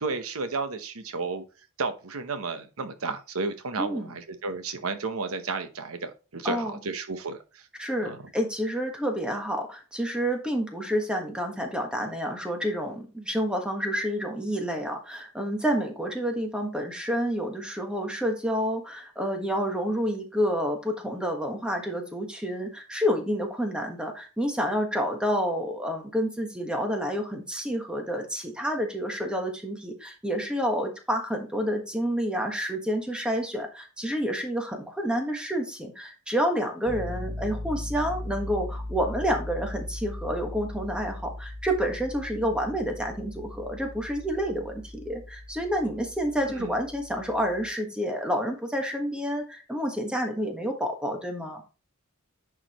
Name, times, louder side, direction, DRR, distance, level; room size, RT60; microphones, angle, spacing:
voice 1, 0.0-1.4 1.8-7.7 8.0-8.2 46.5-46.7, right 3 dB, 70° right, 8 dB, 1.0 m, -32 dB
voice 2, 3.8-4.1 6.4-6.8 7.8-51.6, equal, 5° right, 3 dB, 1.4 m, -29 dB
Piano, 36.9-47.7, left 1 dB, 50° right, 1.7 m, -38 dB
10.0 x 4.9 x 3.0 m, 0.32 s
head